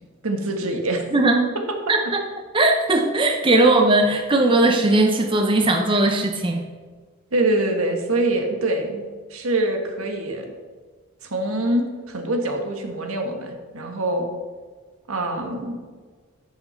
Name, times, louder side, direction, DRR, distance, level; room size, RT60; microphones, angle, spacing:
voice 1, 0.2-1.0 7.3-10.4 11.2-14.3 15.1-15.8, right 1 dB, 75° right, 3 dB, 1.6 m, -24 dB
voice 2, 1.1-1.5 1.9-2.2 2.5-6.6, right 2 dB, 25° right, 3 dB, 0.6 m, -18 dB
13.5 x 5.7 x 4.4 m, 1.5 s
head